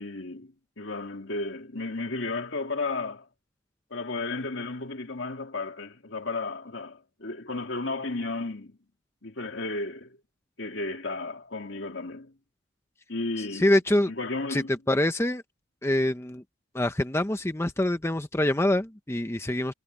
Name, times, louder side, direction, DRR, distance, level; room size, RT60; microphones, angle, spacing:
voice 1, 0.0-3.3 3.9-8.8 9.2-10.2 10.6-12.3 13.1-13.7 14.1-14.8, left 3 dB, 70° left, 2.4 m, -33 dB
voice 2, 13.5-14.1 14.5-15.4 15.8-16.4 16.7-19.7, left 1 dB, 15° left, 0.7 m, -25 dB
head